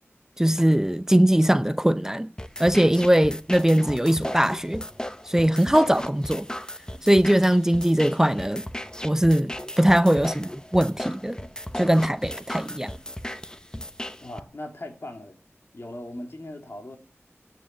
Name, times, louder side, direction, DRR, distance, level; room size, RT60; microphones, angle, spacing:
voice 1, 0.4-2.3 2.6-4.8 5.2-6.5 7.0-8.6 9.0-9.5 9.8-11.4 11.8-12.9, right 1 dB, 10° right, 0.6 m, -20 dB
sound 1, 2.4-14.4, left 1 dB, 15° left, 0.9 m, -36 dB
voice 2, 14.2-15.4 15.7-17.0, left 1 dB, 55° left, 2.9 m, -38 dB
17.0 x 7.5 x 7.2 m
wide cardioid pair, 55°, 5 cm